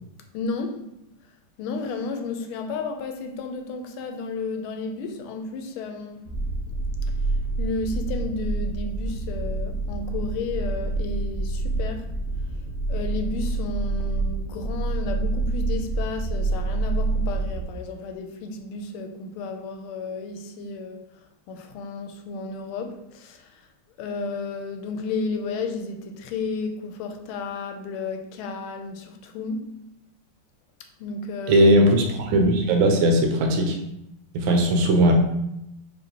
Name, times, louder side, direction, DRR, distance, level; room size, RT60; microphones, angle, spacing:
voice 1, 0.3-0.9 1.6-6.3 7.2-12.1 12.9-23.7 24.0-29.7 31.0-31.7, left 4 dB, 85° left, 1.4 m, -32 dB
sound 1, 6.3-17.6, right 3 dB, 60° left, 0.8 m, -27 dB
voice 2, 31.5-33.8 34.3-35.1, right 1 dB, 75° right, 1.3 m, -18 dB
4.3 x 3.3 x 2.8 m
omnidirectional pair, 2.3 m